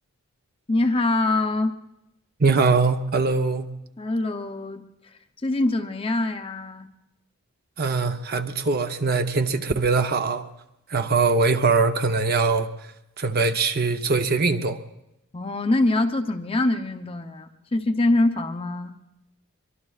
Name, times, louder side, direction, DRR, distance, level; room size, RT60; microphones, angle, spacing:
voice 1, 0.7-1.7 4.0-4.8 5.4-6.9 15.3-18.9, left 2 dB, 25° left, 0.7 m, -24 dB
voice 2, 2.4-3.7 7.8-10.5 10.9-12.7 13.2-14.8, right 4 dB, 45° right, 0.8 m, -22 dB
24.0 x 23.5 x 2.4 m
head